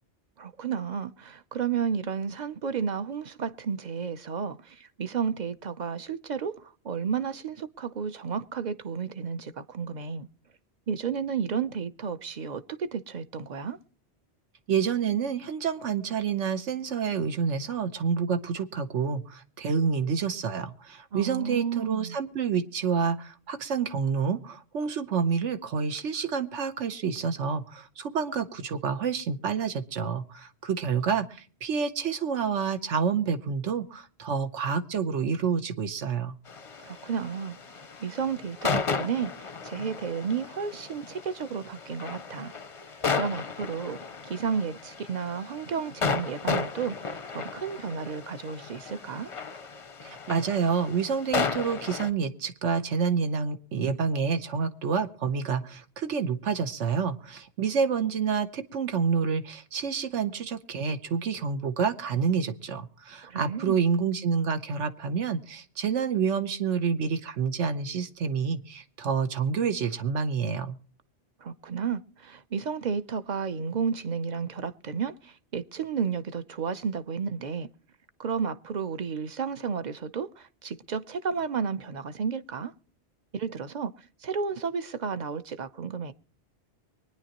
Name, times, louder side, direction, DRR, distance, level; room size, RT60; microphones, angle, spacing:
voice 1, 0.4-10.3 10.9-13.8 21.1-22.2 36.8-42.5 43.1-49.3 63.3-63.9 71.4-77.7 78.2-82.7 83.3-86.1, right 6 dB, 45° right, 0.7 m, -32 dB
voice 2, 14.7-36.3 50.0-70.8, right 6 dB, 85° right, 1.3 m, -28 dB
sound 1, 36.5-52.1, left 5 dB, 35° left, 0.5 m, -34 dB
24.0 x 10.0 x 2.9 m
omnidirectional pair, 1.2 m